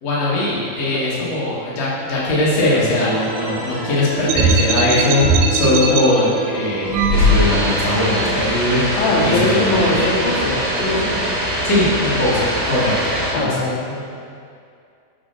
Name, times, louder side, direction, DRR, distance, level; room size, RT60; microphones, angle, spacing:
voice 1, 0.0-10.1 11.6-13.0 13.3-13.6, left 1 dB, 55° left, -8 dB, 2.4 m, -20 dB
voice 2, 0.9-1.3 1.7-1.8 9.0-11.2 13.3-14.1, left 2 dB, 80° left, -3 dB, 2.7 m, -21 dB
sound 1, 2.5-7.7, right 2 dB, 65° right, 1.7 m, -30 dB
sound 2, 4.3-6.0 6.9-7.9, right 1 dB, 85° right, 2.4 m, -17 dB
sound 3, 7.1-13.3, right 1 dB, 45° right, 1.3 m, -23 dB
7.9 x 6.9 x 2.7 m, 2.4 s
omnidirectional pair, 4.3 m